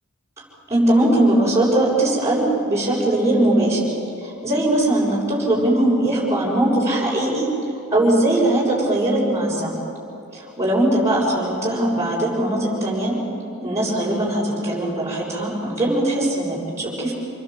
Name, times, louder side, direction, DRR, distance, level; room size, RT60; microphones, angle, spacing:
voice 1, 0.7-3.9 4.2-7.5 7.9-9.8 10.3-13.1 13.6-17.1, right 1 dB, 15° right, -7 dB, 7.1 m, -20 dB
28.0 x 22.0 x 7.6 m, 2.7 s
head